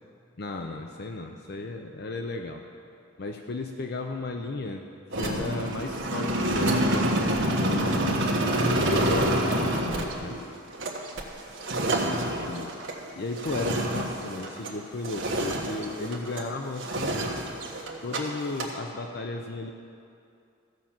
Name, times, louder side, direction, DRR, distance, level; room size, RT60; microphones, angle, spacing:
voice 1, 0.4-2.6 3.2-4.9 5.1-8.3 8.7-10.4 12.5-12.7 13.1-17.2 18.0-19.7, left 3 dB, 50° left, 4 dB, 0.6 m, -35 dB
sound 1, 5.1-14.8 15.0-16.5 16.8-18.2 18.4-18.7, right 1 dB, 60° right, 1.4 m, -27 dB
15.0 x 5.8 x 7.3 m, 2.5 s
head